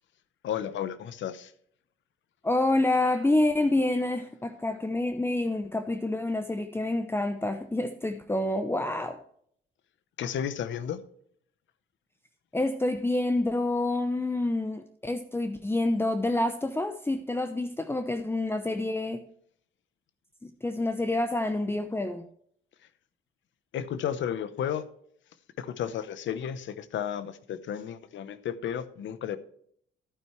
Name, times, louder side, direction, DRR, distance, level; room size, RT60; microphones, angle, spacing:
voice 1, 0.4-1.5 10.2-11.0 23.7-24.8 25.6-29.4, left 9 dB, 70° left, 14 dB, 0.9 m, -33 dB
voice 2, 2.4-9.2 12.5-19.2 20.4-22.2, left 2 dB, 10° left, 7 dB, 0.7 m, -28 dB
11.5 x 9.1 x 3.2 m, 0.64 s
cardioid pair, 90°, 20 cm